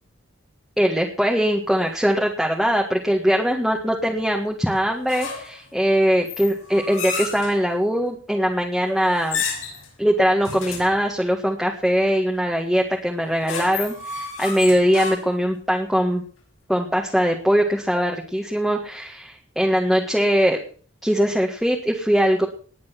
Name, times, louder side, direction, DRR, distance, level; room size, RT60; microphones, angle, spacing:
voice 1, 0.8-9.4 10.0-16.2 16.7-20.6 21.0-22.5, equal, ahead, 0 dB, 1.7 m, -21 dB
sound 1, 5.1-5.6 6.3-7.6 9.2-9.9 10.4-11.0 13.2-15.5, left 5 dB, 85° left, 6.7 m, -31 dB
19.5 x 9.1 x 6.0 m, 0.43 s
head